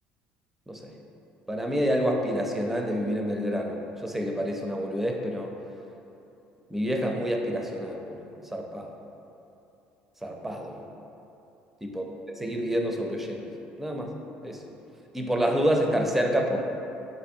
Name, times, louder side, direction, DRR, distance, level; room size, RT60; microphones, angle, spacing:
voice 1, 1.5-5.5 6.7-8.2 8.5-8.9 10.2-10.8 11.8-12.0 12.4-13.5 13.8-14.1 14.4-14.6 15.1-16.6, equal, 5° right, 1 dB, 0.4 m, -28 dB
4.0 x 2.6 x 2.6 m, 2.8 s
supercardioid pair, 80°, 4 cm